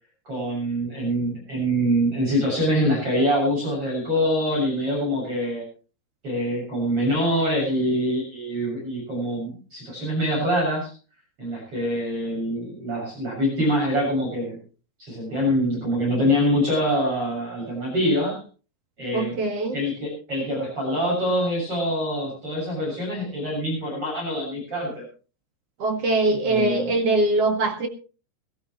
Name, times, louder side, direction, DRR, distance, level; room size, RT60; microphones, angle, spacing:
voice 1, 0.3-5.6 6.2-10.9 11.4-14.6 15.0-18.4 19.0-19.4 19.7-25.0 26.5-26.9, equal, 25° right, -3 dB, 7.5 m, -24 dB
voice 2, 19.1-19.8 25.8-27.9, right 2 dB, 60° right, 2 dB, 1.5 m, -22 dB
21.0 x 14.5 x 3.1 m, 0.36 s
omnidirectional pair, 5.8 m